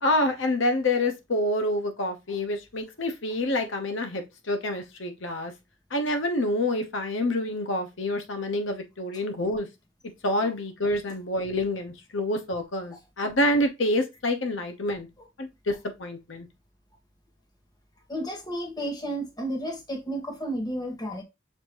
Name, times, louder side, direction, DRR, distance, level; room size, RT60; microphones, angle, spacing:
voice 1, 0.0-5.5 5.9-9.7 10.2-15.1 15.4-15.7 16.0-16.5, left 1 dB, 80° left, 1.0 m, -27 dB
voice 2, 18.1-21.2, right 1 dB, 20° left, 1.1 m, -32 dB
6.5 x 2.7 x 3.0 m
head